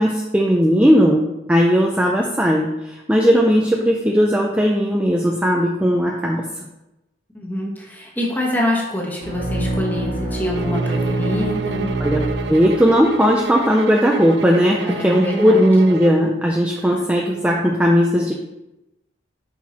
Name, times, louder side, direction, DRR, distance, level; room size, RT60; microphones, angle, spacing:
voice 1, 0.0-2.7 3.1-6.4 12.0-12.2 12.5-18.3, equal, 5° right, -1 dB, 0.4 m, -17 dB
voice 2, 7.3-11.9 14.6-15.7 16.8-17.0, left 1 dB, 10° left, -2 dB, 1.2 m, -26 dB
sound 1, 9.2-13.1, right 1 dB, 40° right, 1.6 m, -25 dB
sound 2, 10.5-16.3, right 6 dB, 65° right, 0.4 m, -30 dB
5.9 x 4.4 x 4.2 m, 0.95 s
head